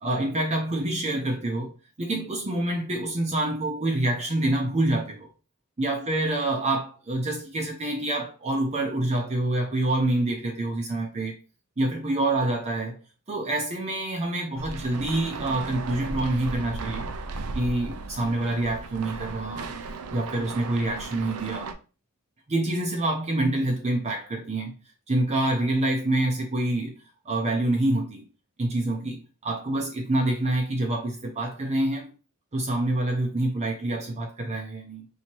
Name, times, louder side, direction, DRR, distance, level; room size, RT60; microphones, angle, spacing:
voice 1, 0.0-1.7 2.0-5.3 5.8-11.4 11.8-13.0 13.3-17.1 17.5-19.7 20.1-21.7 22.5-24.8 25.1-27.0 27.3-28.2 28.6-32.1 32.5-35.1, right 1 dB, 30° right, 0.6 m, -26 dB
sound 1, 14.6-21.7, right 3 dB, 90° right, 0.5 m, -36 dB
3.0 x 2.8 x 4.3 m
head